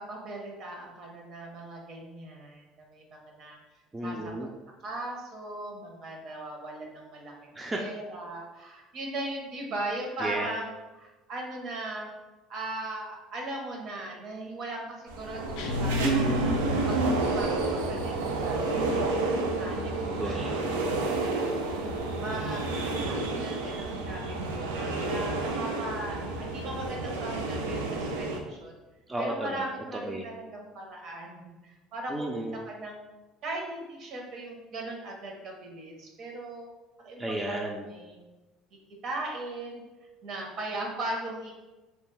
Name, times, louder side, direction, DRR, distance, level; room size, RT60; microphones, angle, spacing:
voice 1, 0.0-3.6 4.0-4.3 4.8-7.3 7.7-12.1 12.5-16.1 16.9-17.0 17.2-19.0 19.6-20.8 21.3-21.9 22.2-28.7 29.2-33.0 33.4-36.7 37.0-37.2 37.5-37.6 37.8-38.2 39.0-39.8 40.2-41.5, right 2 dB, 55° right, 0 dB, 0.7 m, -38 dB
voice 2, 3.9-4.5 7.5-7.8 10.2-10.5 16.0-16.9 20.0-21.3 29.1-29.6 29.9-30.3 32.1-32.6 37.2-37.8, right 1 dB, 15° right, -1 dB, 0.4 m, -34 dB
sound 1, 15.1-28.4, right 2 dB, 90° right, 0.3 m, -30 dB
sound 2, 15.6-17.3, left 4 dB, 75° left, 0.4 m, -32 dB
2.6 x 2.2 x 3.1 m, 1.1 s
hypercardioid pair, 75°, 0 cm